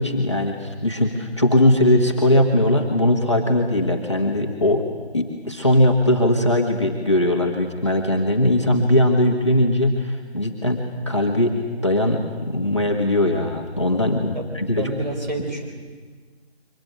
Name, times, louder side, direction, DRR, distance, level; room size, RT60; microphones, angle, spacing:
voice 1, 0.0-4.8 5.1-11.5 11.8-14.9, left 1 dB, 25° left, 1 dB, 1.7 m, -20 dB
voice 2, 14.8-15.7, right 2 dB, 40° right, 2 dB, 4.6 m, -29 dB
24.0 x 18.5 x 9.1 m, 1.5 s
figure-of-eight pair, 180°, 33 cm